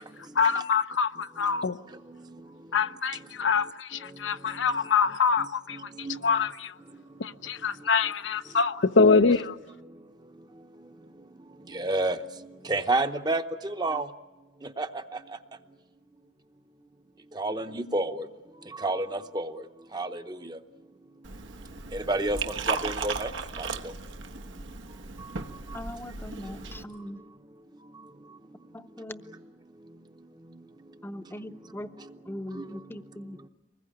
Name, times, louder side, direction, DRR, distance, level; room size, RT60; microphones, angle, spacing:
voice 1, 0.4-1.8 2.7-5.9 6.2-6.7 7.2-9.6, left 5 dB, 80° left, 11 dB, 0.7 m, -24 dB
voice 2, 2.1-2.4 4.5-4.6 5.4-6.5 11.7-14.1 14.6-15.2 17.3-18.3 18.7-19.6 19.9-20.6 21.9-23.3 23.6-23.9 25.7-25.8 32.0-32.1 32.5-32.7, right 2 dB, 20° right, 8 dB, 0.8 m, -31 dB
Liquid, 21.2-26.8, right 4 dB, 85° right, 1.3 m, -36 dB
voice 3, 25.7-27.2 28.7-29.2 31.0-31.9 32.3-33.4, left 1 dB, 10° left, 10 dB, 0.7 m, -40 dB
24.0 x 21.0 x 9.9 m, 1.3 s
head